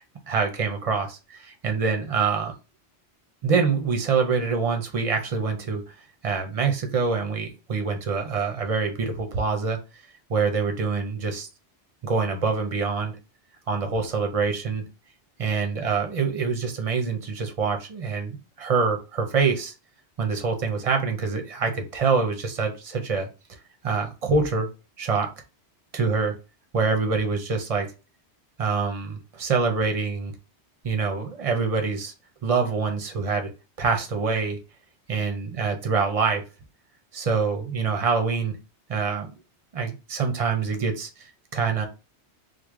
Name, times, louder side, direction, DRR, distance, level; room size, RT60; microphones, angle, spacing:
voice 1, 0.3-2.5 3.4-5.9 6.2-9.8 10.3-11.5 12.0-13.2 13.7-14.8 15.4-19.7 20.2-23.6 23.8-24.7 25.0-25.3 25.9-26.3 26.7-27.9 28.6-30.3 30.8-32.1 32.4-33.5 33.8-34.6 35.1-36.4 37.1-38.6 38.9-39.3 39.7-41.9, right 5 dB, 40° right, 5 dB, 0.6 m, -25 dB
3.2 x 2.1 x 3.5 m, 0.29 s
omnidirectional pair, 1.2 m